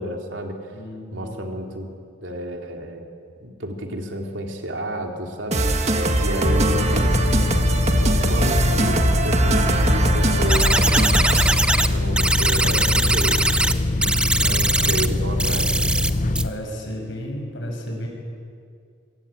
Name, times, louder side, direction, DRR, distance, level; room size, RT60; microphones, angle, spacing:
voice 1, 0.0-0.6 1.1-1.9 2.2-3.0 3.4-5.6 6.2-7.2 8.3-10.7 11.9-13.4 14.4-15.7, equal, 65° right, 2 dB, 3.5 m, -31 dB
voice 2, 0.7-1.4 5.8-6.4 12.6-13.7 14.2-14.8 16.0-18.1, equal, 65° left, 2 dB, 6.6 m, -34 dB
sound 1, 5.5-11.8, right 1 dB, 30° right, 1.8 m, -21 dB
sound 2, 6.4-16.5, left 2 dB, 40° left, 0.7 m, -23 dB
sound 3, 10.5-11.9 12.2-13.7 14.0-15.1 15.4-16.1 16.3-16.4, right 2 dB, 5° right, 0.7 m, -21 dB
24.5 x 23.5 x 8.8 m, 2.3 s
head